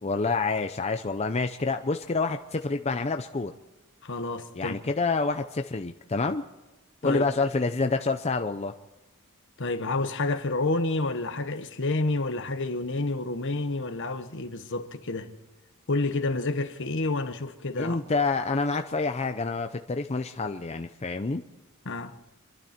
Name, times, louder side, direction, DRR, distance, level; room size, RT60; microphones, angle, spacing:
voice 1, 0.0-3.5 4.5-6.4 7.0-8.7 17.8-21.4, left 3 dB, 30° left, 0.6 m, -28 dB
voice 2, 4.0-4.8 7.0-7.2 9.6-15.3 15.9-18.0 21.8-22.2, left 2 dB, 60° left, 1.3 m, -29 dB
26.5 x 12.0 x 4.4 m
head